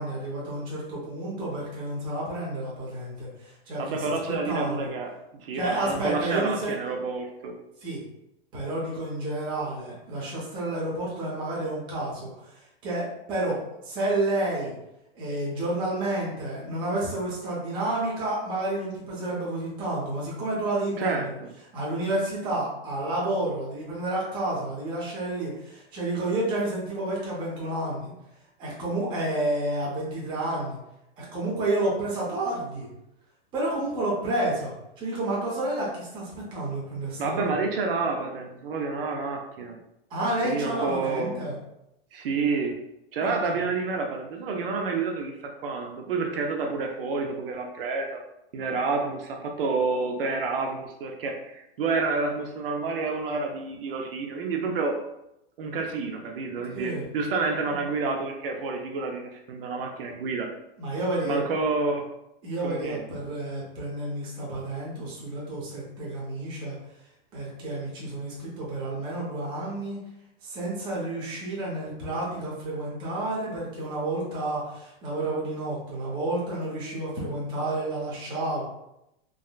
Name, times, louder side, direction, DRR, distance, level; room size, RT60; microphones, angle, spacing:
voice 1, 0.0-4.9 5.5-6.7 7.8-8.0 8.5-12.3 12.8-13.6 13.8-14.7 15.1-21.3 21.7-28.1 28.6-30.8 31.2-32.9 33.5-37.4 40.1-41.5 43.2-43.6 56.7-57.0 57.7-57.8 60.8-61.4 62.4-66.8 67.3-70.0 70.4-78.7, right 1 dB, 15° right, -5 dB, 0.6 m, -30 dB
voice 2, 3.8-7.5 21.0-21.5 37.2-39.8 40.4-41.4 42.1-42.8 43.1-48.2 48.5-55.0 55.6-60.5 61.2-62.0 62.6-63.1, right 4 dB, 65° right, 2 dB, 0.5 m, -29 dB
3.5 x 2.1 x 2.3 m, 0.85 s
supercardioid pair, 165°, 31 cm